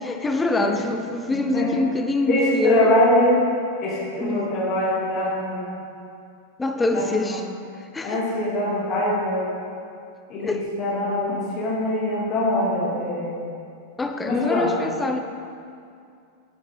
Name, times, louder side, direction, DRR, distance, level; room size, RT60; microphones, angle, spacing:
voice 1, 0.0-2.9 4.2-4.5 6.6-7.4 7.8-8.2 10.4-10.7 14.0-15.2, left 2 dB, 10° left, 6 dB, 0.7 m, -25 dB
voice 2, 2.3-3.3 3.8-5.7 6.9-7.4 8.0-9.5 10.3-13.4 14.2-14.7, left 1 dB, 35° left, -6 dB, 2.4 m, -23 dB
9.8 x 9.3 x 3.6 m, 2.4 s
figure-of-eight pair, 90°, 0 cm